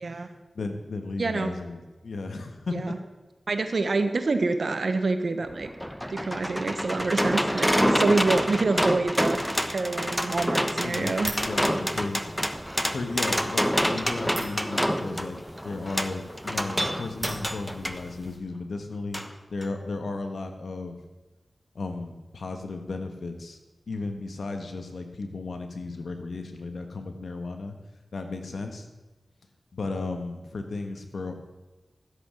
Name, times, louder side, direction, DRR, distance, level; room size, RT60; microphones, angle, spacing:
voice 1, 0.5-2.9 10.8-12.3 12.9-15.4 15.6-19.2 19.5-21.0 21.7-23.6 23.9-27.7 28.1-28.9 29.7-31.5, left 3 dB, 85° left, 6 dB, 1.5 m, -34 dB
voice 2, 1.2-1.5 2.7-3.0 3.5-5.7 6.1-9.4 9.7-11.3, right 3 dB, 75° right, 8 dB, 1.3 m, -26 dB
sound 1, 5.4-18.0 19.1-19.3 19.6-19.7, equal, 5° left, 1.1 m, -27 dB
sound 2, 10.8-18.4, right 1 dB, 20° right, 3.6 m, -44 dB
14.0 x 8.0 x 6.4 m, 1.2 s
cardioid pair, 40°, 0 cm